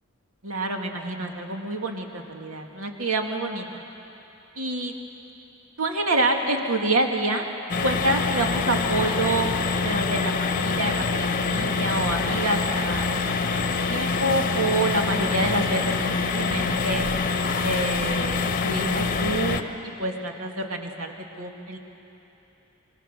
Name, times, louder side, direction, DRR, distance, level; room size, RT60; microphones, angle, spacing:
voice 1, 0.4-3.7 4.6-4.9 5.8-7.5 7.8-9.5 9.8-17.1 17.6-21.8, right 2 dB, 75° right, 2 dB, 2.2 m, -27 dB
sound 1, 7.7-19.6, left 4 dB, 40° left, 0.9 m, -25 dB
25.5 x 23.0 x 6.6 m, 3.0 s
head